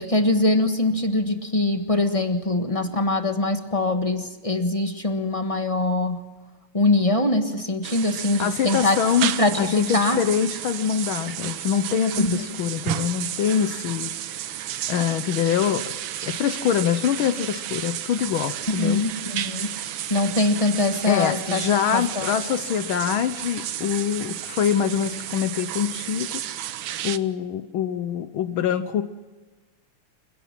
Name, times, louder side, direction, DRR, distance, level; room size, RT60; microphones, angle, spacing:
voice 1, 0.0-6.2 6.7-9.0 9.4-10.2 12.2-12.4 18.8-21.6 21.9-22.3, left 2 dB, 20° left, 6 dB, 1.2 m, -23 dB
sound 1, 7.8-27.2, right 11 dB, 70° right, 1.5 m, -32 dB
voice 2, 8.4-9.3 9.6-14.1 14.9-15.8 16.2-19.0 21.1-26.4 27.0-29.0, left 8 dB, 70° left, 11 dB, 1.6 m, -24 dB
29.0 x 16.5 x 5.9 m, 1.2 s
omnidirectional pair, 2.4 m